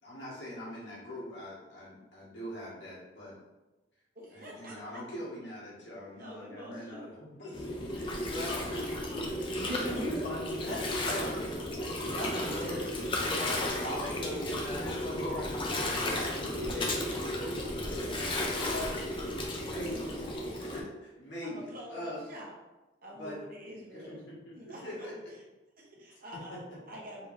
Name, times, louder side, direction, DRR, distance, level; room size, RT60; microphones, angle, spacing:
voice 1, 0.0-3.4 4.3-9.7 10.9-12.2 13.0-19.0 19.6-20.3 20.6-22.3 23.1-25.1, left 1 dB, 65° left, -7 dB, 1.4 m, -42 dB
voice 2, 4.1-5.0 6.1-7.1 21.4-22.5 23.0-24.2 24.5-25.1 25.8-27.3, equal, 50° right, -3 dB, 0.9 m, -47 dB
Gurgling, 7.5-20.8, left 1 dB, 25° left, 0.5 m, -34 dB
voice 3, 9.6-11.4 12.1-13.0 19.7-19.9 20.4-20.5, equal, 80° left, -6 dB, 1.3 m, -38 dB
3.3 x 2.8 x 3.2 m, 1.1 s
head